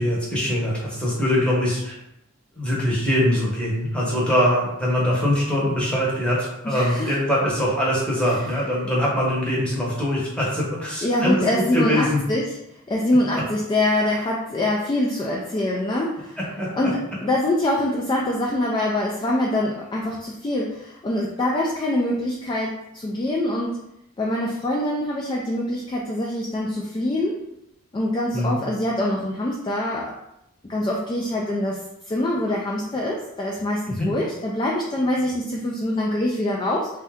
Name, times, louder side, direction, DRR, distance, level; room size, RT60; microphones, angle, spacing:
voice 1, 0.0-1.9 2.6-12.2 13.3-13.4 16.4-16.7 28.3-28.6 33.9-34.1, equal, 5° left, -5 dB, 0.9 m, -23 dB
voice 2, 6.6-7.2 11.0-12.5 12.9-16.4 16.7-23.8 24.2-27.4 27.9-30.1 30.7-31.8 32.1-36.9, left 1 dB, 20° left, -3 dB, 0.3 m, -24 dB
2.7 x 2.2 x 3.4 m, 0.81 s
head